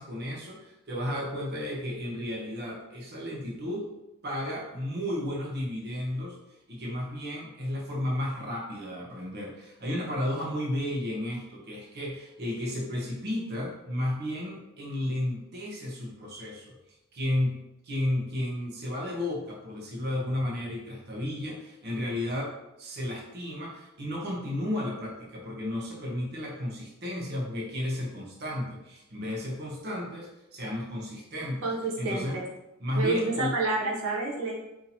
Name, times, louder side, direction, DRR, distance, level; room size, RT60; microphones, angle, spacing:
voice 1, 0.0-3.8 4.2-6.4 6.7-16.8 17.1-22.5 22.8-32.4 32.8-33.5, left 1 dB, 50° right, -2 dB, 0.8 m, -33 dB
voice 2, 31.6-32.3 32.9-34.5, right 2 dB, 75° right, -2 dB, 0.8 m, -28 dB
4.1 x 2.7 x 2.8 m, 0.92 s
head